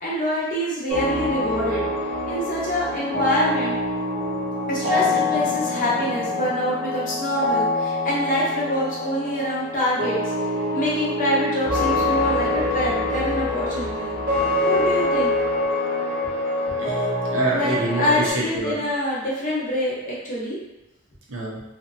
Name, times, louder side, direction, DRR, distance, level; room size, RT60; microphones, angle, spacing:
voice 1, 0.0-1.9 2.3-3.8 4.7-10.2 10.7-15.4 17.5-20.6, equal, 40° left, -6 dB, 0.8 m, -25 dB
sound 1, 0.9-4.0 11.7-15.6, equal, 10° left, 0.4 m, -37 dB
sound 2, 0.9-18.3, left 2 dB, 50° right, 0.8 m, -25 dB
voice 2, 16.8-18.8 21.3-21.6, right 2 dB, 75° right, -3 dB, 0.7 m, -26 dB
2.7 x 2.1 x 2.5 m, 0.94 s
head